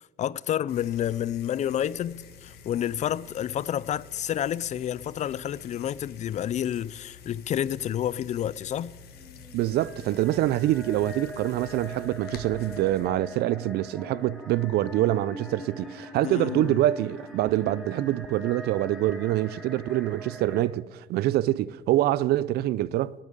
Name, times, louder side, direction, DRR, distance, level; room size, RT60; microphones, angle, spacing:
voice 1, 0.2-8.9 16.2-16.7, left 10 dB, 45° left, 0.4 m, -29 dB
sound 1, 0.7-13.1, left 7 dB, 70° left, 1.7 m, -49 dB
sound 2, 8.8-20.6, equal, ahead, 1.9 m, -42 dB
voice 2, 9.5-23.1, right 14 dB, 70° right, 0.4 m, -25 dB
11.5 x 8.6 x 8.9 m
cardioid pair, 110°, 17 cm